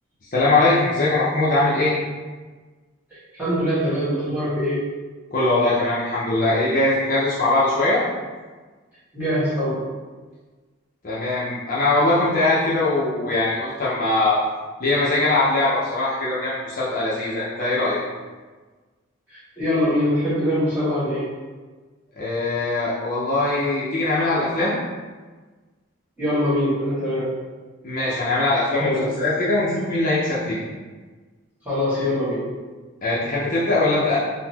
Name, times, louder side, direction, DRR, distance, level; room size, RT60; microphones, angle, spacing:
voice 1, 0.3-1.9 5.3-8.0 11.0-14.4 14.8-18.0 22.2-24.7 27.8-30.6 33.0-34.2, left 2 dB, 40° left, -8 dB, 0.5 m, -21 dB
voice 2, 3.3-4.8 9.1-9.8 19.3-21.3 26.2-27.3 28.8-29.0 31.6-32.4, left 1 dB, 10° right, -13 dB, 1.4 m, -23 dB
3.8 x 2.0 x 2.8 m, 1.4 s
head